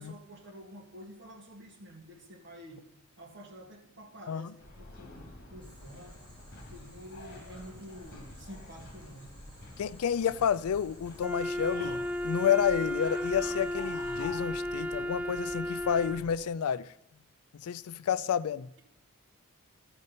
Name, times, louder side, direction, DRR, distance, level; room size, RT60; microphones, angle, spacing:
voice 1, 0.0-2.8 3.2-6.2 6.7-9.3, equal, 55° right, 1.8 m, -49 dB
sound 1, 4.6-16.4, left 2 dB, 45° left, 2.1 m, -48 dB
Boiling, 5.6-14.3, right 1 dB, 25° right, 3.2 m, -60 dB
voice 2, 9.8-16.9 17.5-18.7, left 8 dB, 70° left, 0.4 m, -30 dB
Wind instrument woodwind instrument, 11.2-16.3, left 1 dB, 5° right, 0.3 m, -34 dB
14.5 x 5.2 x 5.5 m
head